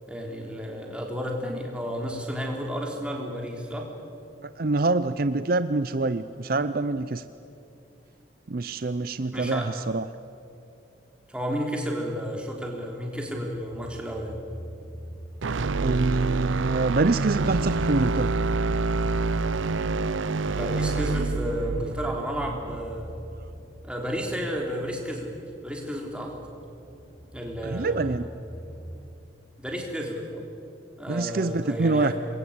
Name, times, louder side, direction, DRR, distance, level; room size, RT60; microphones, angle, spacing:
voice 1, 0.1-3.9 9.3-9.7 11.3-14.4 20.5-23.1 23.8-25.3 25.6-26.4 27.3-28.2 29.6-30.4 31.0-32.1, equal, 5° right, 0 dB, 3.5 m, -32 dB
voice 2, 4.6-7.2 8.5-10.1 15.8-18.3 27.6-28.2 31.1-32.1, right 3 dB, 50° right, 13 dB, 0.6 m, -25 dB
sound 1, 12.6-29.0, equal, 15° left, 7.7 m, -45 dB
sound 2, 15.4-23.6, right 3 dB, 85° right, 0.6 m, -27 dB
27.0 x 22.0 x 8.7 m, 2.7 s
head